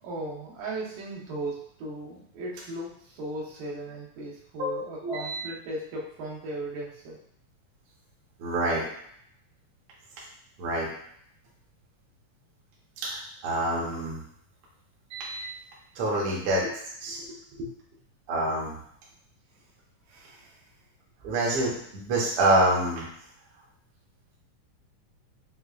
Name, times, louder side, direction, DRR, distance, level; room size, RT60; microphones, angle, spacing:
voice 1, 0.0-7.2 16.6-16.7 17.1-17.7 20.1-20.6, right 1 dB, 85° right, -4 dB, 2.5 m, -37 dB
voice 2, 4.6-5.4 8.4-8.8 10.6-10.9 13.0-14.2 15.1-15.5 15.9-16.6 17.0-17.2 18.3-18.8 21.2-23.0, right 1 dB, 60° right, -5 dB, 1.5 m, -26 dB
6.6 x 2.3 x 2.3 m, 0.69 s
omnidirectional pair, 3.7 m